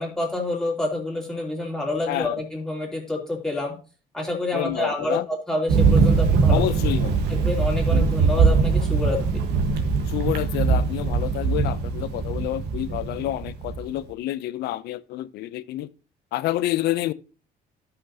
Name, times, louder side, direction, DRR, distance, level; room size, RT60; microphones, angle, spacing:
voice 1, 0.0-3.7 4.1-6.6 7.3-9.4, left 2 dB, 5° left, 2.9 m, -28 dB
voice 2, 4.5-5.3 6.5-7.2 10.1-15.9 16.3-17.1, left 15 dB, 75° left, 0.5 m, -28 dB
Thunder, 5.7-13.9, right 5 dB, 80° right, 1.4 m, -21 dB
13.0 x 5.8 x 2.8 m
cardioid pair, 110°, 17 cm